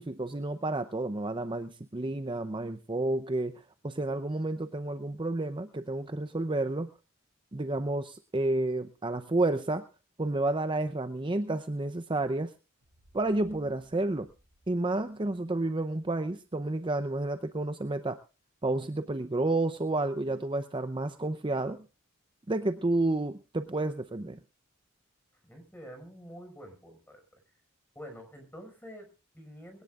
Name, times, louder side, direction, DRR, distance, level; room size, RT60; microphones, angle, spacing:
voice 1, 0.0-6.9 7.5-9.8 10.2-12.5 13.1-14.3 14.7-18.2 18.6-21.8 22.5-24.4, right 2 dB, 25° right, 10 dB, 0.7 m, -30 dB
sound 1, 12.8-16.7, equal, 80° right, 6.3 m, -64 dB
voice 2, 25.4-27.4 28.0-29.8, equal, 10° left, 5 dB, 5.4 m, -47 dB
21.5 x 18.0 x 2.4 m, 0.32 s
head